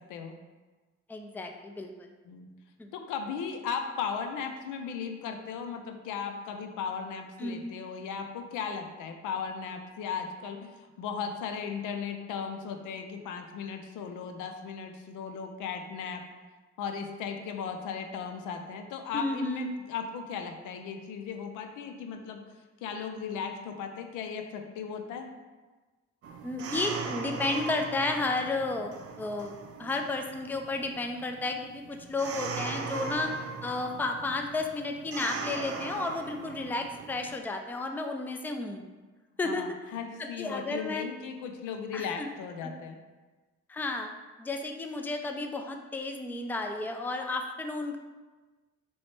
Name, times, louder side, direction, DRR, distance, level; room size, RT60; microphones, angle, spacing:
voice 1, 1.1-1.9 2.8-2.9 7.4-7.8 19.1-19.7 26.4-29.5 29.8-33.4 33.6-38.8 39.4-39.7 40.2-41.1 41.9-42.3 42.6-42.7 43.7-44.1 44.4-48.0, left 2 dB, 5° left, 4 dB, 0.3 m, -32 dB
voice 2, 2.9-10.7 11.0-16.2 16.8-22.4 22.8-25.3 39.4-43.0, left 6 dB, 90° left, 5 dB, 0.5 m, -36 dB
sound 1, 26.2-37.4, right 4 dB, 50° right, 0.5 m, -39 dB
3.2 x 3.1 x 4.2 m, 1.3 s
cardioid pair, 90°, 30 cm